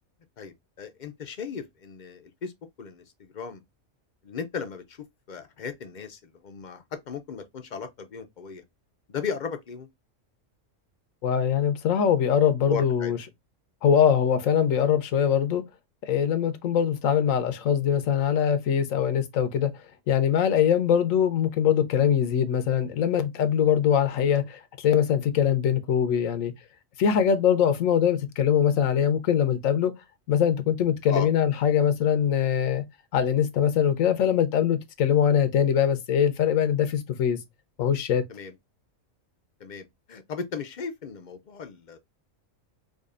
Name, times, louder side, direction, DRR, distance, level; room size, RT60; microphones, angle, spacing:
voice 1, 0.4-2.5 2.8-3.6 4.2-5.0 5.3-8.6 9.1-9.9 12.7-13.1 31.1-31.3 38.3-38.5 39.6-42.0, left 5 dB, 55° left, 0.5 m, -36 dB
voice 2, 11.2-13.2 13.8-15.6 16.0-19.7 20.1-26.5 27.0-29.9 30.3-32.8 33.1-37.4 37.8-38.2, left 8 dB, 85° left, 1.1 m, -22 dB
5.0 x 2.3 x 2.4 m
omnidirectional pair, 1.3 m